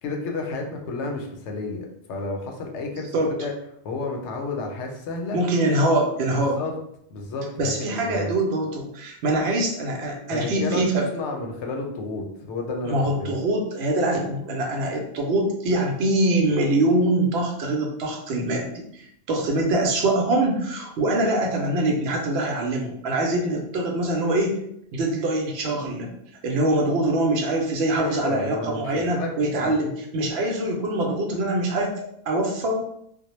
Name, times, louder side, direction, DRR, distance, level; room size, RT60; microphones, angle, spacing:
voice 1, 0.0-3.1 3.4-3.5 3.8-5.4 6.3-6.7 7.1-8.3 10.3-10.8 11.1-13.3 28.0-29.3 29.6-29.7, left 3 dB, 85° left, 2 dB, 0.9 m, -31 dB
voice 2, 5.3-6.6 7.6-11.1 12.8-24.6 24.9-26.1 26.4-31.9 32.3-32.8, right 1 dB, 70° right, 0 dB, 0.8 m, -24 dB
2.2 x 2.0 x 3.0 m, 0.73 s
omnidirectional pair, 1.1 m